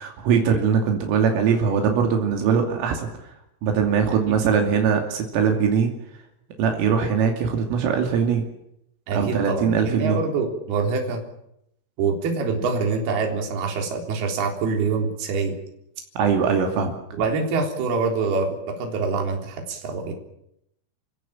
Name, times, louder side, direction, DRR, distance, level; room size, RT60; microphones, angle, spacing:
voice 1, 0.0-3.1 3.6-5.9 6.6-8.4 9.2-10.2 16.2-17.0, right 6 dB, 80° right, 3 dB, 5.2 m, -21 dB
voice 2, 9.1-11.2 12.0-15.6 17.1-20.1, right 4 dB, 55° right, 2 dB, 5.4 m, -25 dB
29.5 x 16.0 x 8.9 m, 0.78 s
omnidirectional pair, 5.9 m